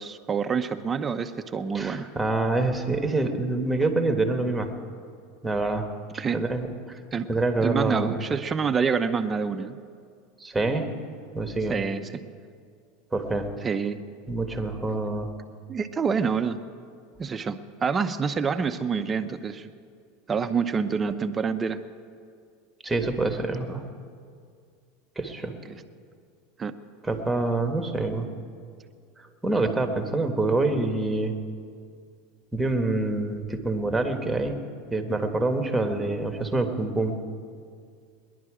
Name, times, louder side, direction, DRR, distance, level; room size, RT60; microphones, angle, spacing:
voice 1, 0.0-2.1 6.2-6.4 7.1-7.3 7.6-9.8 11.7-12.2 13.6-14.0 15.7-16.6 17.2-19.7 20.3-21.8 26.6-26.7, right 6 dB, 25° right, 9 dB, 0.6 m, -27 dB
voice 2, 1.7-4.7 5.4-5.9 6.1-7.0 7.3-8.1 10.4-10.9 11.3-11.8 13.1-13.5 14.3-15.3 22.8-23.8 25.1-25.6 27.0-28.3 29.4-31.4 32.5-34.6 34.9-37.2, right 2 dB, 10° right, 5 dB, 1.4 m, -26 dB
20.5 x 11.0 x 4.9 m, 2.2 s
supercardioid pair, 110°, 0 cm